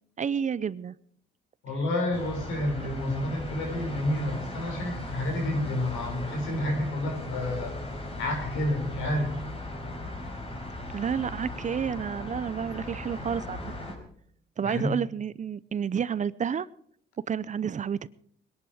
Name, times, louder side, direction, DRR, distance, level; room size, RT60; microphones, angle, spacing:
voice 1, 0.2-0.9 10.9-13.6 14.6-16.7 17.3-18.1, right 7 dB, 40° right, 18 dB, 0.6 m, -30 dB
voice 2, 1.6-7.7 8.2-9.4 14.6-14.9, left 1 dB, 85° left, 2 dB, 6.0 m, -30 dB
sound 1, 2.1-14.0, left 2 dB, 30° left, 4.5 m, -38 dB
21.0 x 11.0 x 4.9 m, 0.63 s
cardioid pair, 90°, 20 cm